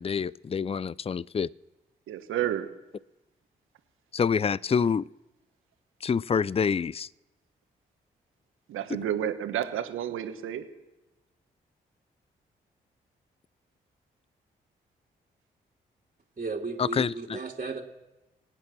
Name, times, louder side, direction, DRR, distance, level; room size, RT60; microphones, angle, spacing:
voice 1, 0.0-1.5 4.1-5.1 6.0-7.1 16.8-17.4, left 6 dB, 30° left, 23 dB, 0.5 m, -27 dB
voice 2, 2.1-2.7 8.7-10.6, right 11 dB, 75° right, 8 dB, 1.5 m, -30 dB
voice 3, 16.4-17.8, right 4 dB, 35° right, 0 dB, 2.7 m, -34 dB
24.5 x 9.0 x 6.2 m, 1.0 s
hypercardioid pair, 40°, 21 cm